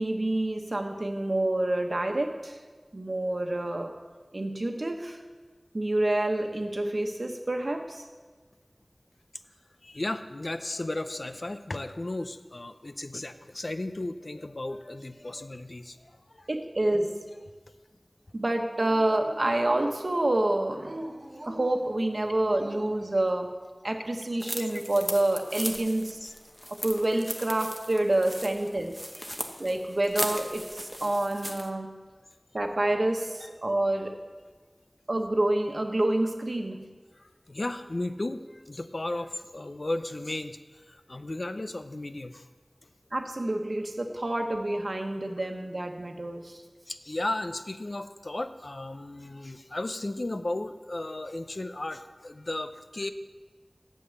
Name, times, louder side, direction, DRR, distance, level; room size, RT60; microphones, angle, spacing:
voice 1, 0.0-2.6 2.9-4.0 4.3-5.2 5.7-8.0 16.5-17.2 18.3-21.0 21.4-23.5 23.8-26.3 26.7-29.0 29.6-32.0 32.5-34.2 35.1-36.9 43.1-46.6, right 1 dB, 70° right, 4 dB, 1.1 m, -28 dB
voice 2, 9.8-16.0 16.3-16.5 26.2-26.3 29.3-29.5 37.5-40.6 40.9-42.4 46.9-53.1, left 2 dB, 70° left, 10 dB, 0.5 m, -35 dB
Dog, 18.4-19.9 20.7-23.1, right 1 dB, 55° right, 0.8 m, -44 dB
sound 1, 24.4-31.7, equal, 10° left, 1.0 m, -38 dB
8.4 x 7.7 x 7.1 m, 1.4 s
wide cardioid pair, 40°, 0 cm